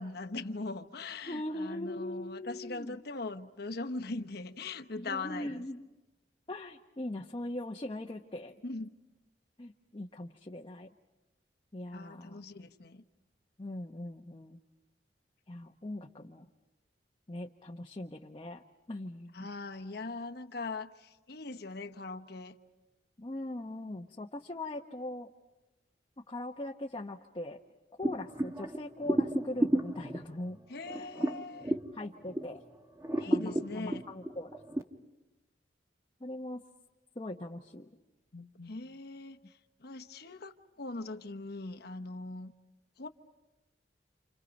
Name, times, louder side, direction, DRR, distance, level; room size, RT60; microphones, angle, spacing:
voice 1, 0.0-5.6 8.6-9.0 11.9-13.0 19.3-22.6 30.7-31.7 33.2-34.0 38.3-39.4 39.8-42.5 43.0-43.1, left 3 dB, 60° left, 1.1 m, -41 dB
voice 2, 1.3-3.0 5.0-5.9 6.5-8.6 9.6-10.9 11.7-12.4 13.6-14.6 15.5-16.5 17.3-18.6 18.9-19.5 23.2-25.3 26.3-27.6 28.0-30.6 31.0-31.1 31.9-32.6 33.3-34.5 36.2-36.6 37.2-37.9, left 1 dB, 30° left, 0.9 m, -40 dB
sound 1, 28.0-32.6 33.0-34.8, right 1 dB, 15° right, 1.2 m, -32 dB
29.5 x 28.5 x 5.3 m
head